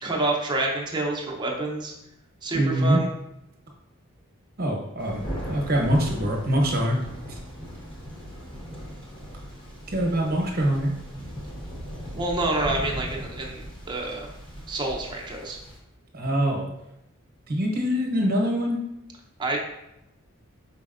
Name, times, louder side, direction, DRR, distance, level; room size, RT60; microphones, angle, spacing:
voice 1, 0.0-1.9 2.4-3.1 12.1-14.3 14.7-15.6 19.4-19.6, right 2 dB, 20° right, -1 dB, 0.7 m, -28 dB
voice 2, 2.5-3.0 4.6-7.0 9.9-10.9 16.1-16.7 17.5-18.8, equal, 45° right, 1 dB, 0.9 m, -24 dB
Thunder, 5.0-15.8, equal, 25° left, 1.0 m, -38 dB
5.0 x 4.1 x 2.5 m, 0.87 s
head